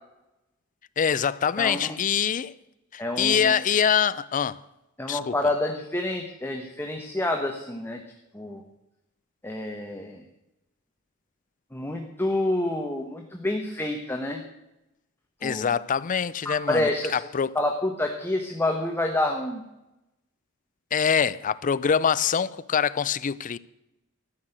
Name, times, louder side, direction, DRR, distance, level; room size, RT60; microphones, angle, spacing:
voice 1, 1.0-2.5 2.9-4.6 5.1-5.3 15.4-17.5 20.9-23.6, left 7 dB, 40° left, 0.4 m, -24 dB
voice 2, 1.6-2.0 3.0-3.5 5.0-8.0 8.3-8.6 9.4-10.2 11.7-14.4 15.4-15.7 16.4-17.2 17.5-19.6, left 1 dB, 10° left, 1.0 m, -28 dB
13.5 x 6.4 x 9.0 m
head